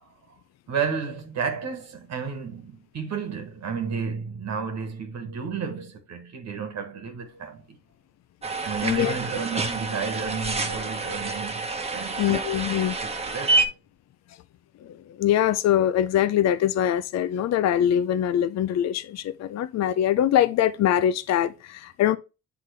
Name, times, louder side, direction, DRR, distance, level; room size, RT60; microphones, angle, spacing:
voice 1, 0.7-7.8 8.6-11.6 11.9-12.2 13.0-13.7, right 6 dB, 65° right, 1.5 m, -32 dB
sound 1, 8.4-13.7, right 3 dB, 20° right, 1.0 m, -28 dB
voice 2, 8.8-9.2 12.2-13.0 14.8-22.2, left 11 dB, 60° left, 0.5 m, -23 dB
8.4 x 3.7 x 3.3 m
cardioid pair, 90°, 30 cm